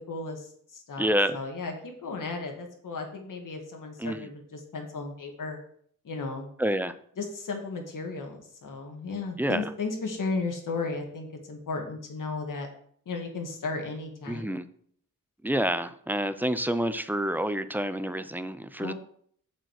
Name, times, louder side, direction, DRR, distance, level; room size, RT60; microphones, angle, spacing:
voice 1, 0.0-5.6 6.0-6.5 7.2-12.7 13.1-14.5 18.8-18.9, left 3 dB, 70° left, 2 dB, 2.0 m, -35 dB
voice 2, 1.0-1.4 4.0-4.3 6.6-6.9 9.4-9.6 14.3-14.7 15.4-18.9, equal, 5° right, 12 dB, 0.5 m, -28 dB
7.5 x 5.2 x 6.5 m, 0.62 s
wide cardioid pair, 105°, 33 cm